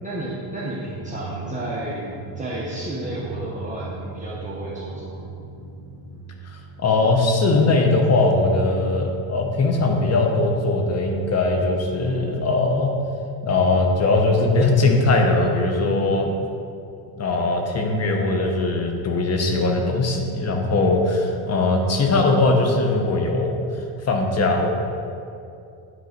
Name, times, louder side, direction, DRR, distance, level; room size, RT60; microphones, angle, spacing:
voice 1, 0.0-5.2, right 1 dB, 15° right, -7 dB, 1.1 m, -32 dB
Drum, 0.8-7.3, right 4 dB, 65° right, 1.2 m, -38 dB
voice 2, 6.8-12.9 13.4-16.4 17.2-23.6 24.0-24.7, left 2 dB, 30° left, 2 dB, 1.0 m, -20 dB
9.6 x 3.8 x 5.3 m, 2.5 s
cardioid pair, 120°, 47 cm